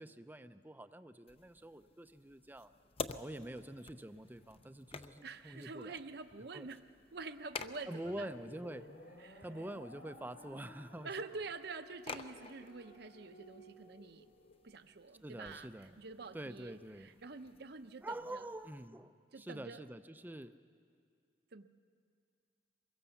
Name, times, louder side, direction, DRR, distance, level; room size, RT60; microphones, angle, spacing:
voice 1, 0.0-2.7 3.1-6.0 6.5-6.7 7.9-11.1 15.2-16.0 16.3-17.1 18.0-20.5, right 1 dB, 10° right, 10 dB, 0.5 m, -46 dB
sound 1, 1.3-18.9, left 4 dB, 30° left, 0.6 m, -52 dB
voice 2, 5.2-6.8 7.1-8.3 9.2-9.4 11.0-14.3 14.6-18.5 19.3-19.8 21.5-21.6, right 4 dB, 60° right, 9 dB, 0.8 m, -47 dB
sound 2, 8.0-14.6, left 1 dB, 65° left, 3.1 m, -57 dB
24.0 x 22.0 x 7.1 m, 2.2 s
head